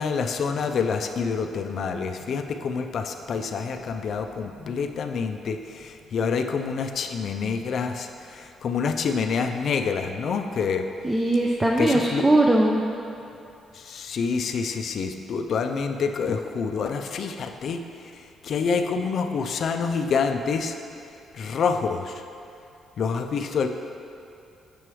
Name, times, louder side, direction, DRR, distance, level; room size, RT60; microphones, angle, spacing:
voice 1, 0.0-10.9 11.8-12.3 13.7-17.8 18.4-20.8 21.3-22.1 23.0-23.7, left 5 dB, 60° left, 6 dB, 0.4 m, -27 dB
voice 2, 11.0-12.8, right 1 dB, 15° right, -1 dB, 0.4 m, -20 dB
6.9 x 3.0 x 4.8 m, 2.6 s
cardioid pair, 90°, 0 cm